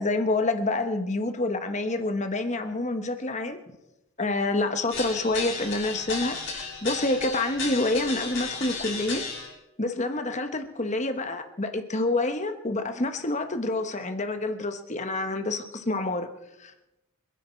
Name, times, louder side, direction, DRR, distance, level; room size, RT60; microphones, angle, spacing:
voice 1, 0.0-3.6 4.2-9.3 9.8-16.3 16.6-16.7, left 2 dB, 30° left, 8 dB, 1.2 m, -27 dB
sound 1, 4.9-9.5, left 4 dB, 55° left, 5.9 m, -34 dB
26.0 x 10.5 x 4.5 m, 0.93 s
head